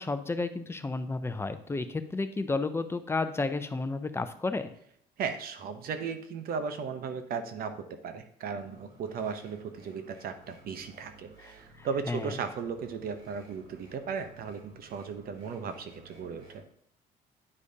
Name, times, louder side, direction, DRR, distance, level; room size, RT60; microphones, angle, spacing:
voice 1, 0.0-4.7 11.4-11.5 11.8-12.3, left 3 dB, 15° left, 9 dB, 0.6 m, -32 dB
voice 2, 5.2-16.6, right 6 dB, 60° right, 8 dB, 0.8 m, -36 dB
sound 1, 8.6-16.6, right 2 dB, 80° right, 2.8 m, -56 dB
9.7 x 4.9 x 2.8 m, 0.70 s
cardioid pair, 110°, 17 cm